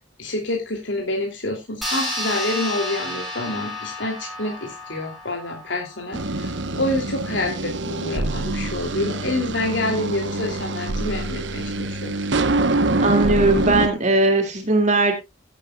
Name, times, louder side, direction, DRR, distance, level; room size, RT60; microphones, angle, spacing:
voice 1, 0.2-12.1, left 1 dB, 80° left, 1 dB, 2.9 m, -27 dB
sound 1, 1.8-6.7, left 1 dB, ahead, 5.2 m, -31 dB
sound 2, 6.1-13.9, right 2 dB, 80° right, 1.0 m, -25 dB
voice 2, 13.0-15.1, right 2 dB, 40° right, 4 dB, 2.3 m, -19 dB
17.0 x 9.0 x 2.3 m, 0.23 s
head